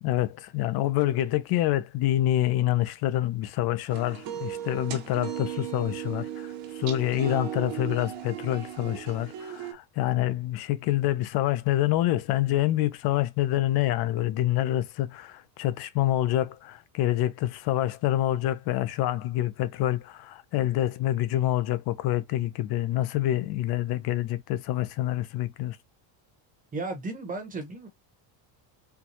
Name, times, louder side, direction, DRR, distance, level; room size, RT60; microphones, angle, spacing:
voice 1, 0.0-25.8, left 14 dB, 50° left, 0.6 m, -27 dB
sound 1, 3.9-9.7, right 10 dB, 60° right, 1.2 m, -36 dB
voice 2, 26.7-27.9, right 3 dB, 15° right, 1.0 m, -34 dB
4.5 x 2.3 x 2.7 m
cardioid pair, 155°, 49 cm